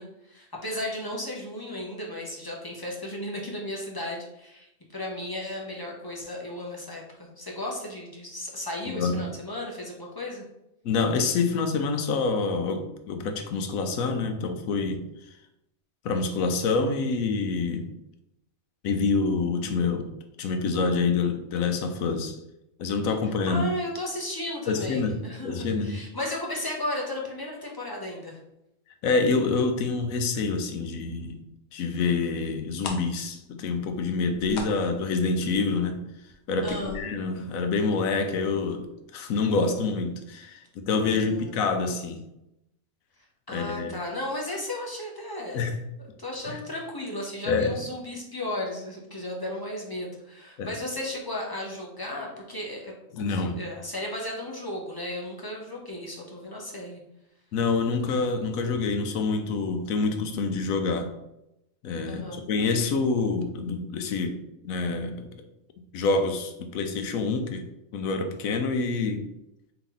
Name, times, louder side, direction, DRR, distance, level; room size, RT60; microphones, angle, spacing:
voice 1, 0.0-10.4 23.5-28.4 36.6-37.0 41.1-41.6 43.5-45.7 46.2-57.0 62.1-62.4, left 1 dB, 20° left, -2 dB, 0.6 m, -35 dB
voice 2, 8.9-9.3 10.8-15.0 16.0-17.9 18.8-20.1 20.4-22.4 22.8-23.6 24.7-25.2 25.4-26.0 29.0-31.4 31.7-36.0 36.5-42.2 43.5-44.0 45.5-45.8 46.5-46.6 47.5-47.7 50.6-50.7 53.1-53.6 57.5-61.1 61.8-65.4 65.9-67.6 67.9-69.3, left 4 dB, 85° left, 6 dB, 1.1 m, -27 dB
sound 1, 32.8-38.3 38.6-38.7 39.1-39.4 39.7-39.8, left 3 dB, 60° left, 0.9 m, -41 dB
4.4 x 2.9 x 3.8 m, 0.87 s
omnidirectional pair, 1.4 m